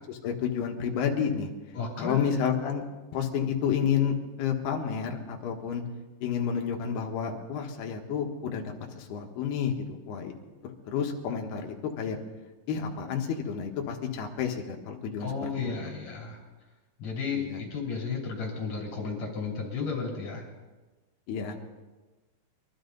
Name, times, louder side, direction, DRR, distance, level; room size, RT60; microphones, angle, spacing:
voice 1, 0.1-1.5 2.0-2.8 3.1-5.8 6.2-10.3 10.6-12.2 12.7-15.7 17.3-17.6 21.3-21.5, left 7 dB, 65° left, 2 dB, 3.0 m, -30 dB
voice 2, 1.7-2.3 15.2-16.4 17.0-20.4, left 5 dB, 40° left, -2 dB, 3.8 m, -33 dB
24.0 x 12.5 x 4.0 m, 1.2 s
omnidirectional pair, 5.7 m